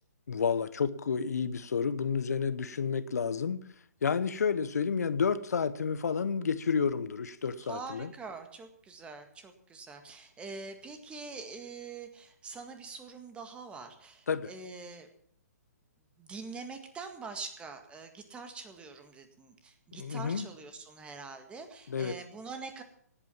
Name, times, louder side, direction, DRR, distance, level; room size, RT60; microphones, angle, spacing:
voice 1, 0.3-3.6 4.0-8.1 14.3-14.5 19.9-20.5 21.9-22.1, left 6 dB, 65° left, 1.0 m, -30 dB
voice 2, 7.6-15.1 16.2-22.8, right 4 dB, 10° right, 1.9 m, -44 dB
18.0 x 8.8 x 7.2 m
figure-of-eight pair, 135°, 9 cm